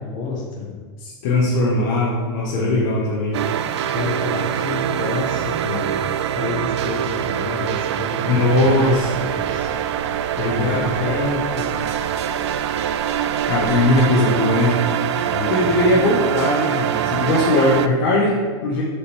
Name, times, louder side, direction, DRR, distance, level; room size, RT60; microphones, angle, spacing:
voice 1, 0.0-0.8 2.5-2.9 3.9-6.0 6.3-9.7 10.5-11.9 15.3-16.1, left 4 dB, 30° left, 0 dB, 1.2 m, -29 dB
voice 2, 1.0-3.4 8.3-9.3 10.4-11.1 13.5-14.8 15.5-18.8, left 1 dB, 50° left, -5 dB, 1.3 m, -19 dB
sound 1, 3.3-17.9, right 9 dB, 90° right, 0.4 m, -24 dB
sound 2, 8.6-14.0, right 3 dB, 20° right, 1.9 m, -40 dB
7.1 x 5.1 x 3.5 m, 1.5 s
supercardioid pair, 170°, 14 cm